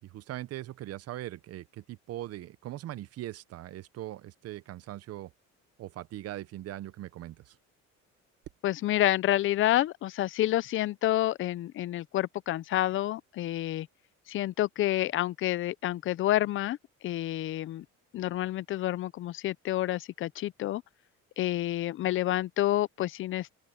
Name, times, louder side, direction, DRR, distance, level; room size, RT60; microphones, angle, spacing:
voice 1, 0.0-5.3 5.8-7.6, right 14 dB, 55° right, 0.8 m, -40 dB
voice 2, 8.6-13.9 14.3-16.8 17.0-17.8 18.1-20.8 21.4-23.5, left 14 dB, 45° left, 0.4 m, -29 dB
open air
cardioid pair, 150°, 29 cm